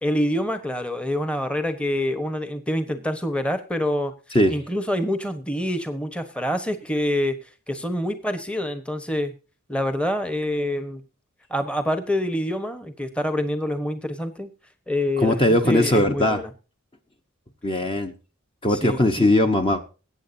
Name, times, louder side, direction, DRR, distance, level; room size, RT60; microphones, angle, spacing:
voice 1, 0.0-4.1 4.5-7.3 7.7-9.3 9.7-11.0 11.5-14.5 14.9-16.5 18.7-19.3, left 1 dB, 5° left, 9 dB, 1.1 m, -26 dB
voice 2, 15.2-16.4 17.6-18.1 18.6-19.8, left 1 dB, 25° left, 5 dB, 1.1 m, -19 dB
21.5 x 8.8 x 2.7 m, 0.34 s
head